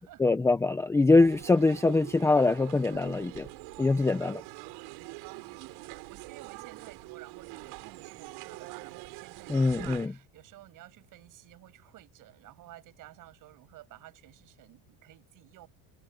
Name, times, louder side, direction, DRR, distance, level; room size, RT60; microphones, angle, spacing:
voice 1, 0.2-3.5 3.8-4.4 9.5-10.1, left 3 dB, 5° left, 0.6 m, -23 dB
sound 1, 1.1-10.1, right 27 dB, 75° right, 6.3 m, -44 dB
voice 2, 4.2-4.6 5.2-15.7, right 15 dB, 50° right, 7.8 m, -53 dB
cardioid pair, 170°, 42 cm